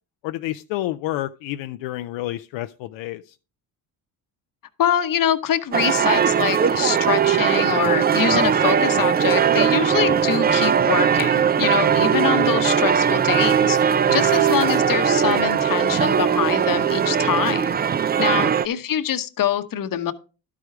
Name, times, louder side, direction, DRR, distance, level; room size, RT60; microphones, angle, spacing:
voice 1, 0.2-3.4 14.0-14.4 18.4-18.6, left 15 dB, 75° left, 0.6 m, -30 dB
voice 2, 4.8-17.8 18.2-20.1, left 10 dB, 45° left, 0.9 m, -24 dB
sound 1, 5.7-18.7, right 8 dB, 25° right, 0.4 m, -19 dB
11.5 x 4.9 x 4.6 m
supercardioid pair, 80°, 46 cm